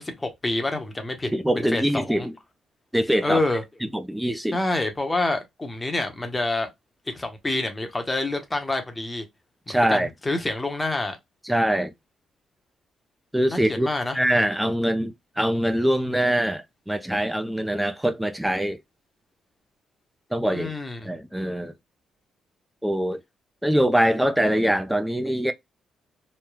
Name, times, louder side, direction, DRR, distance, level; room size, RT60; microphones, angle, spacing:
voice 1, 0.0-1.3 1.6-2.3 3.2-3.6 4.5-6.7 7.1-9.3 9.7-11.2 13.5-14.2 20.5-21.1, left 2 dB, 20° left, 0.9 m, -27 dB
voice 2, 1.3-2.3 2.9-3.4 3.9-4.6 9.7-10.1 11.4-11.9 13.3-13.9 14.1-18.8 20.3-20.7 21.0-21.7 22.8-23.2 23.6-25.5, right 1 dB, 5° right, 0.5 m, -23 dB
3.1 x 2.2 x 2.3 m
cardioid pair, 90°, 0 cm